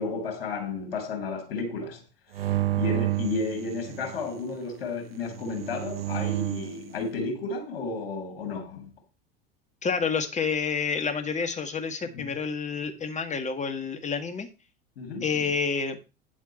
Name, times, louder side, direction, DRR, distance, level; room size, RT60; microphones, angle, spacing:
voice 1, 0.0-2.0 2.3-8.9 12.1-12.3 15.0-15.4, left 3 dB, 80° left, 2.8 m, -33 dB
sound 1, 2.3-4.3 5.3-6.8, right 16 dB, 85° right, 0.7 m, -30 dB
voice 2, 9.8-14.5 15.2-16.0, left 5 dB, 25° left, 1.9 m, -29 dB
9.7 x 7.3 x 4.3 m
hypercardioid pair, 85°, 29 cm